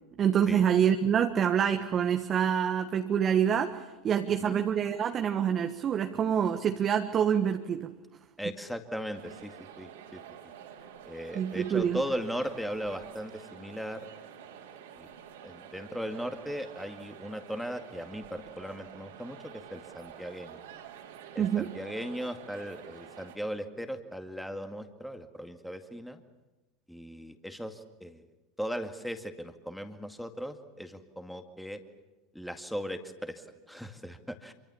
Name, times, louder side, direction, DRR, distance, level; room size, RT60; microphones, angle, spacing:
voice 1, 0.2-7.9 11.3-12.0 21.4-21.7, right 8 dB, 35° right, 6 dB, 1.5 m, -26 dB
voice 2, 8.4-10.2 11.1-14.1 15.0-15.1 15.4-20.6 21.3-26.2 26.9-28.2 28.6-31.8 32.3-34.5, equal, ahead, 6 dB, 2.1 m, -38 dB
sound 1, 9.1-23.4, right 9 dB, 65° right, 3.9 m, -49 dB
27.0 x 25.0 x 7.2 m, 1.1 s
figure-of-eight pair, 80°, 0 cm